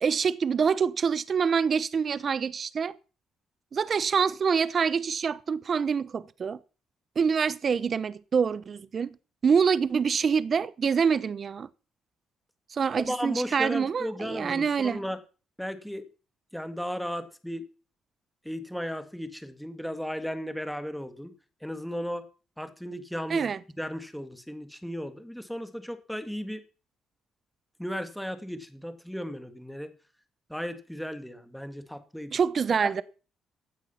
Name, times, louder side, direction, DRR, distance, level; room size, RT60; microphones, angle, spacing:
voice 1, 0.0-2.9 3.7-6.6 7.2-9.1 9.4-11.7 12.7-15.0 23.3-23.6 32.3-33.0, right 6 dB, 45° right, 0.8 m, -26 dB
voice 2, 13.1-15.2 15.6-16.0 16.5-17.6 18.4-21.3 21.6-22.3 22.6-26.6 27.8-29.9 30.5-32.4 33.0-33.1, equal, ahead, 2.2 m, -35 dB
15.5 x 9.1 x 5.8 m
cardioid pair, 90°, 0 cm